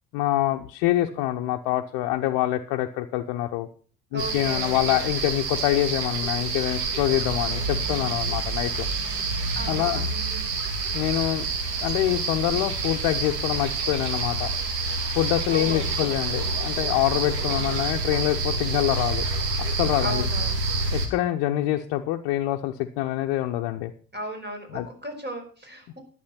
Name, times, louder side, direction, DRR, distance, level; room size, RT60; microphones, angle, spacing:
voice 1, 0.1-3.7 4.1-8.9 9.7-10.1 10.9-11.5 11.8-14.5 15.1-19.3 19.6-20.2 20.9-23.9 24.7-24.9, left 14 dB, 65° left, 3 dB, 0.9 m, -25 dB
voice 2, 4.1-5.1 9.5-10.5 15.5-16.1 17.5-17.7 20.0-20.6 24.1-26.0, right 1 dB, 20° right, 4 dB, 5.1 m, -36 dB
sound 1, 4.2-21.1, right 3 dB, 80° right, 2.2 m, -28 dB
11.5 x 9.1 x 5.8 m, 0.40 s
hypercardioid pair, 55°, 48 cm